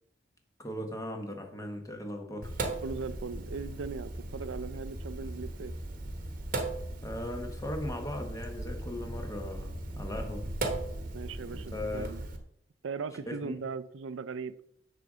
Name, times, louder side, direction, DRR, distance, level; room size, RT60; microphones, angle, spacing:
voice 1, 0.6-2.5 7.0-10.5 11.7-12.1 13.3-13.5, left 1 dB, 15° left, 4 dB, 1.1 m, -38 dB
Sink (filling or washing), 2.4-12.4, right 2 dB, 45° right, 1.0 m, -37 dB
voice 2, 2.8-5.7 11.1-12.2 12.8-14.6, right 5 dB, 80° right, 15 dB, 0.5 m, -38 dB
6.7 x 3.9 x 6.2 m, 0.70 s
head